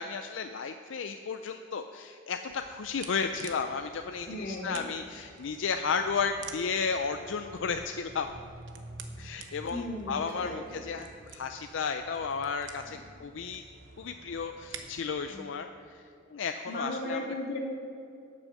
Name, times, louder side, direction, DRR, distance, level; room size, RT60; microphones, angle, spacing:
voice 1, 0.0-8.3 9.2-13.6 14.0-15.7 15.9-16.0 16.3-17.2, left 5 dB, 85° left, 7 dB, 0.5 m, -33 dB
sound 1, 2.5-15.1, right 4 dB, 80° right, 1.0 m, -49 dB
voice 2, 4.2-4.9 9.7-10.8 12.9-13.0 15.3-15.5 16.7-17.6, left 1 dB, 55° left, -2 dB, 2.4 m, -36 dB
11.5 x 6.3 x 7.4 m, 2.5 s
head